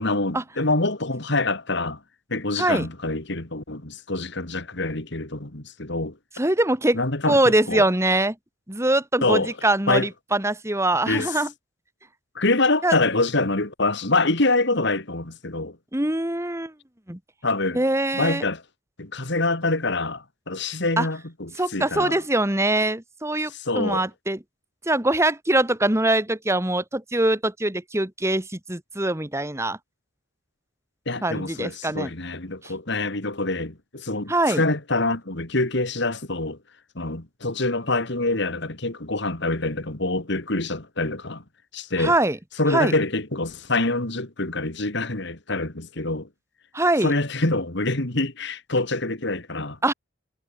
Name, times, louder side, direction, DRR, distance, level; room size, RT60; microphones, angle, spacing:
voice 1, 0.0-2.0 2.3-6.2 6.9-7.8 9.2-9.5 9.9-10.1 11.1-11.4 12.3-15.8 17.4-17.8 18.1-18.6 19.0-22.2 23.5-24.0 31.1-36.6 36.9-41.4 41.7-42.1 42.6-46.3 47.0-49.8, left 2 dB, 60° left, 2.7 m, -25 dB
voice 2, 2.6-2.9 6.4-7.0 7.2-8.3 8.7-11.5 12.8-12.9 15.9-16.7 17.1-17.2 17.7-18.4 21.0-21.1 21.6-24.4 24.8-29.8 31.2-32.1 32.6-32.7 34.3-34.6 42.0-42.4 42.7-42.9 46.7-47.1 49.8-49.9, right 1 dB, 15° right, 1.7 m, -23 dB
head